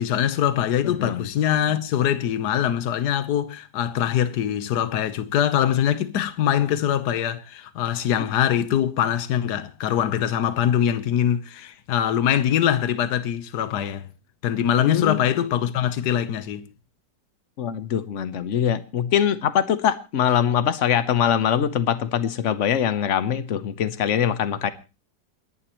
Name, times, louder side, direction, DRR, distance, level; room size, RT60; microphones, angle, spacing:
voice 1, 0.0-14.1 14.4-16.7, left 10 dB, 65° left, 1.4 m, -23 dB
voice 2, 0.8-1.3 14.8-15.2 17.6-24.7, left 9 dB, 50° left, 1.1 m, -23 dB
28.5 x 11.0 x 3.0 m
omnidirectional pair, 1.9 m